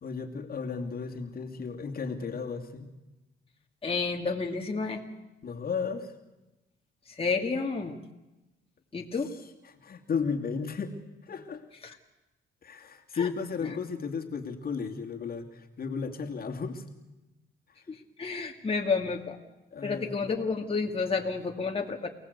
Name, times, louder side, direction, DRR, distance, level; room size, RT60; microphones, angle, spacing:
voice 1, 0.0-2.9 5.4-6.1 9.6-10.9 11.3-11.6 12.6-16.8 19.7-20.2, left 5 dB, 50° left, 3 dB, 2.6 m, -34 dB
voice 2, 3.8-5.1 7.1-8.0 8.9-9.3 11.8-12.0 13.1-13.3 17.9-19.4 19.8-22.1, left 4 dB, 30° left, 1 dB, 2.3 m, -30 dB
29.0 x 18.0 x 8.2 m, 1.0 s
cardioid pair, 90°, 20 cm